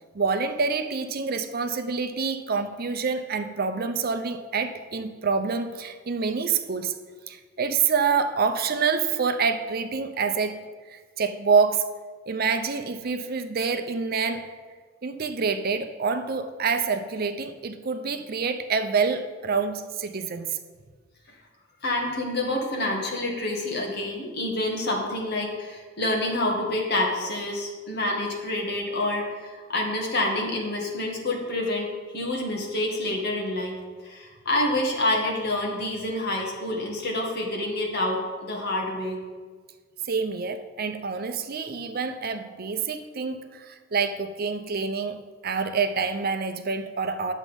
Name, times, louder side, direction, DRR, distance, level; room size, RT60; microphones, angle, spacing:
voice 1, 0.1-6.9 7.3-10.6 10.9-11.9 12.3-14.6 15.0-20.6 40.0-45.2 45.4-47.3, right 5 dB, 50° right, 8 dB, 0.6 m, -27 dB
voice 2, 21.8-39.2, left 1 dB, 55° left, -1 dB, 2.0 m, -28 dB
10.5 x 7.4 x 5.3 m, 1.5 s
head